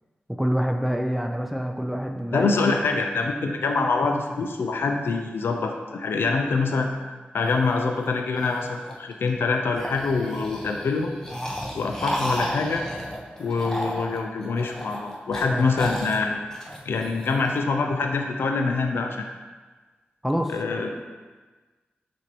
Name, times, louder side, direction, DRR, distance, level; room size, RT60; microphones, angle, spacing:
voice 1, 0.4-3.0 15.5-15.7 20.2-20.6 20.9-21.0, equal, 5° right, 3 dB, 0.4 m, -27 dB
voice 2, 2.3-6.9 7.3-11.1 11.7-12.8 13.4-16.5 16.9-19.3 20.5-20.9, left 4 dB, 80° left, 3 dB, 0.3 m, -25 dB
sound 1, 7.4-9.3 9.7-17.6, equal, 15° left, 0.7 m, -34 dB
5.9 x 2.6 x 3.0 m, 1.3 s
cardioid pair, 45°, 4 cm